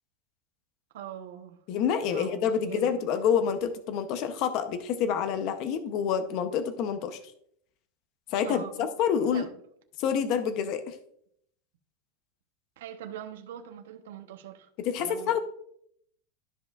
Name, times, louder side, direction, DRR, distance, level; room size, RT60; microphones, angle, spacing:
voice 1, 0.9-1.6 2.1-2.9 8.4-8.9 9.3-9.6 12.8-14.7 15.0-15.4, right 10 dB, 85° right, 0.9 m, -42 dB
voice 2, 1.7-7.2 8.3-9.5 10.0-10.9 14.8-15.4, left 7 dB, 35° left, 0.7 m, -27 dB
13.0 x 5.4 x 2.4 m
supercardioid pair, 175°, 0 cm